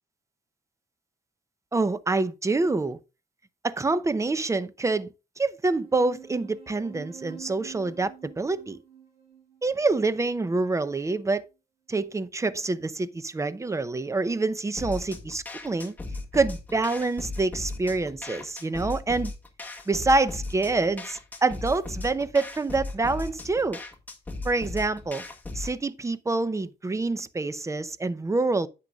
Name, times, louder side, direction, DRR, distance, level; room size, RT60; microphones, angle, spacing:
voice 1, 1.7-3.0 3.6-5.1 5.4-8.8 9.6-11.5 11.9-15.9 16.3-19.3 19.9-23.8 24.4-25.2 25.5-28.7, right 3 dB, 15° right, 0.7 m, -26 dB
sound 1, 5.7-10.7, right 8 dB, 30° right, 4.5 m, -47 dB
sound 2, 14.8-25.8, left 2 dB, 10° left, 1.8 m, -37 dB
10.5 x 8.4 x 2.4 m
cardioid pair, 125°, 18 cm